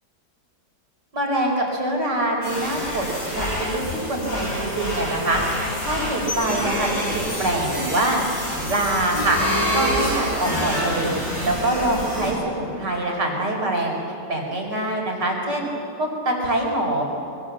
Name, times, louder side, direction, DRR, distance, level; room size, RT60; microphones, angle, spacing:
voice 1, 1.1-5.4 5.8-8.2 8.7-9.4 9.7-11.1 11.4-14.0 14.3-15.7 16.0-17.1, right 1 dB, 75° right, 0 dB, 5.5 m, -24 dB
sound 1, 2.4-12.3, equal, 70° left, 8.9 m, -27 dB
sound 2, 3.7-13.0, equal, 20° left, 4.2 m, -39 dB
26.0 x 23.5 x 7.5 m, 2.5 s
omnidirectional pair, 1.9 m